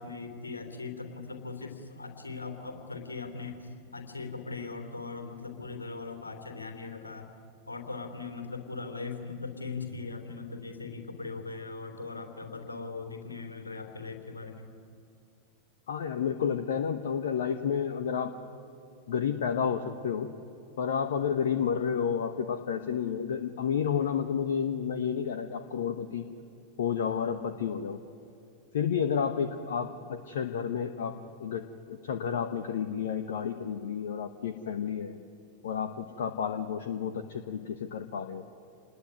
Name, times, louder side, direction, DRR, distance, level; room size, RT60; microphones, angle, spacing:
voice 1, 0.0-7.3 7.7-14.7, left 4 dB, 80° left, 5 dB, 3.4 m, -40 dB
voice 2, 15.9-18.3 19.1-20.3 20.8-26.2 26.8-28.0 28.7-35.2 35.6-38.4, left 7 dB, 60° left, 9 dB, 1.2 m, -31 dB
27.5 x 20.5 x 9.7 m, 2.7 s
figure-of-eight pair, 90°, 0 cm